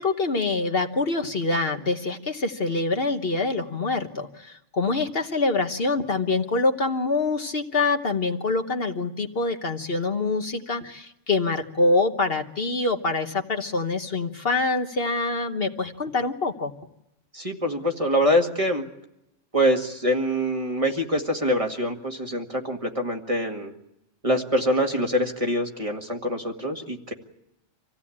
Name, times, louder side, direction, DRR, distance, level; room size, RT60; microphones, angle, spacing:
voice 1, 0.0-16.7, left 3 dB, 50° left, 6 dB, 1.3 m, -25 dB
voice 2, 17.3-18.9 19.5-23.7 24.2-27.1, equal, 25° right, 2 dB, 2.0 m, -24 dB
26.5 x 16.0 x 8.6 m, 0.85 s
omnidirectional pair, 1.3 m